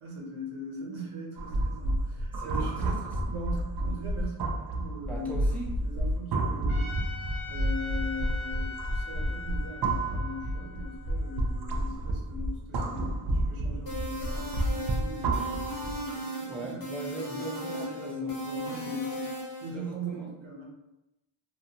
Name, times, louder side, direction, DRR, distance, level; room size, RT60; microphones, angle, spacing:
voice 1, 0.0-5.4 5.8-7.0 7.5-16.9 17.3-20.7, left 1 dB, 80° right, -2 dB, 0.9 m, -40 dB
sound 1, 1.4-16.1, right 1 dB, 55° right, 0.5 m, -30 dB
voice 2, 2.4-3.1 5.0-5.8 16.5-18.4 19.7-20.3, right 2 dB, 5° left, -3 dB, 0.4 m, -40 dB
Trumpet, 6.7-11.9, left 4 dB, 70° left, 0.9 m, -42 dB
sound 2, 13.9-19.7, equal, 45° left, 0.9 m, -37 dB
2.4 x 2.1 x 2.8 m, 0.93 s
wide cardioid pair, 75°, 48 cm